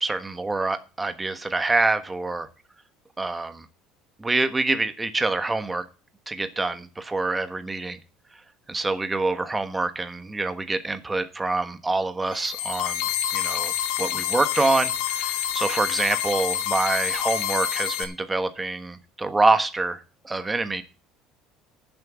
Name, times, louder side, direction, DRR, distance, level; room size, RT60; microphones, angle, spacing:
voice 1, 0.0-2.5 3.2-3.6 4.2-5.8 6.3-8.0 8.7-13.1 13.3-13.7 14.0-20.8, right 3 dB, 15° right, 10 dB, 1.3 m, -26 dB
sound 1, 12.3-18.0, left 11 dB, 80° left, 2.5 m, -27 dB
10.5 x 7.7 x 7.4 m, 0.33 s
cardioid pair, 130°, 0 cm